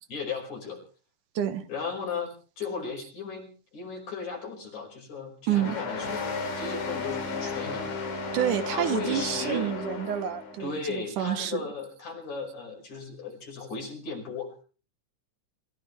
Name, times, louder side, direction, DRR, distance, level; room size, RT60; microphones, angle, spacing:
voice 1, 0.1-0.8 1.7-8.0 8.7-9.7 10.6-14.6, left 5 dB, 70° left, 1 dB, 6.7 m, -36 dB
voice 2, 1.4-1.7 5.5-5.8 8.3-11.6, right 11 dB, 85° right, 10 dB, 2.8 m, -28 dB
sound 1, 5.5-10.6, left 4 dB, 90° left, 4.5 m, -33 dB
27.0 x 15.5 x 3.3 m, 0.38 s
omnidirectional pair, 3.6 m